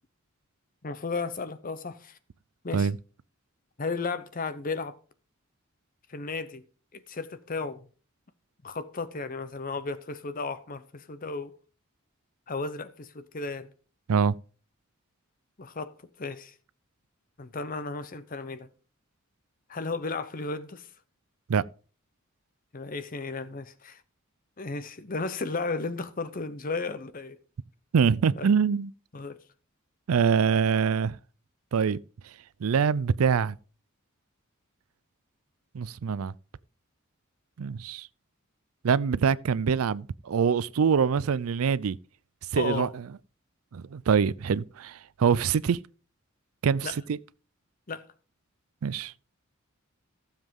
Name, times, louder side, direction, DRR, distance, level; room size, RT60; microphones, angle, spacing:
voice 1, 0.8-2.2 2.6-2.9 3.8-5.0 6.1-6.6 6.9-7.9 8.6-11.5 12.5-13.7 15.6-16.5 17.4-18.7 19.7-20.9 22.7-24.0 24.6-27.4 28.4-28.5 29.1-29.4 42.5-42.9 46.8-46.9 47.9-48.0, left 3 dB, 40° left, 0.8 m, -34 dB
voice 2, 27.9-28.9 30.1-31.2 31.7-32.0 32.6-33.6 35.7-36.3 37.6-38.1 38.8-42.0 42.5-43.0 43.7-45.8 46.6-47.2 48.8-49.1, right 6 dB, 90° right, 0.4 m, -24 dB
15.0 x 7.3 x 3.7 m
head